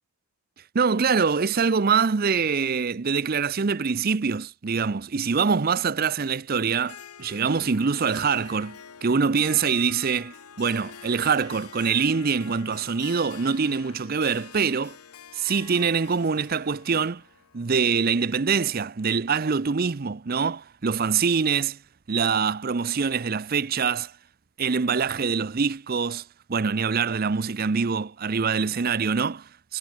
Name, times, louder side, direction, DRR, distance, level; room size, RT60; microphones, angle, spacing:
voice 1, 0.7-15.0 15.3-17.2 17.5-21.8 22.1-24.1 24.6-29.8, right 5 dB, 40° right, 0.5 m, -24 dB
Harp, 6.8-18.7, left 8 dB, 85° left, 0.9 m, -46 dB
head